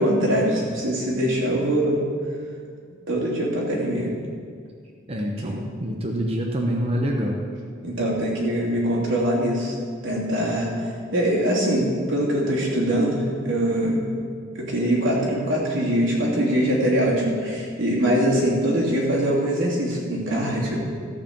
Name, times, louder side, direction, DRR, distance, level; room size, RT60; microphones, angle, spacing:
voice 1, 0.0-2.0 3.1-4.1 5.4-5.6 7.8-9.7 10.0-10.7 11.1-14.1 14.5-20.8, equal, 85° right, -4 dB, 2.9 m, -23 dB
voice 2, 5.1-7.4, equal, 30° right, 0 dB, 0.9 m, -26 dB
14.5 x 4.9 x 7.2 m, 2.1 s
head